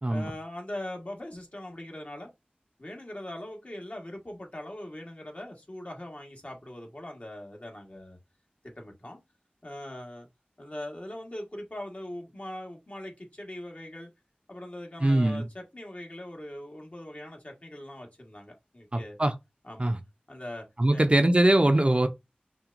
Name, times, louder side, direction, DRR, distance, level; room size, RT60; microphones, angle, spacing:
voice 1, 0.1-2.3 2.8-8.2 8.6-9.2 9.6-10.3 10.6-14.1 14.5-19.2 19.6-19.9 20.3-20.6 20.9-21.0, left 1 dB, 45° left, 1.3 m, -41 dB
voice 2, 15.0-15.4 18.9-19.3 19.8-20.0 20.8-22.1, right 1 dB, 35° right, 0.5 m, -22 dB
5.7 x 2.3 x 2.5 m
wide cardioid pair, 50°, 3 cm